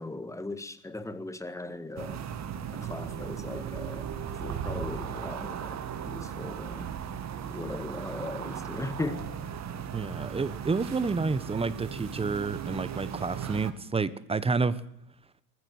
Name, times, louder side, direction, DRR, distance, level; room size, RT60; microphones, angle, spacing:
voice 1, 0.0-2.2 2.7-4.1 4.4-7.0 7.5-9.3, left 2 dB, 5° left, 1.7 m, -38 dB
sound 1, 2.0-13.7, right 8 dB, 35° right, 2.2 m, -37 dB
voice 2, 9.9-14.8, right 4 dB, 10° right, 1.3 m, -29 dB
20.0 x 15.0 x 9.8 m
supercardioid pair, 110°, 49 cm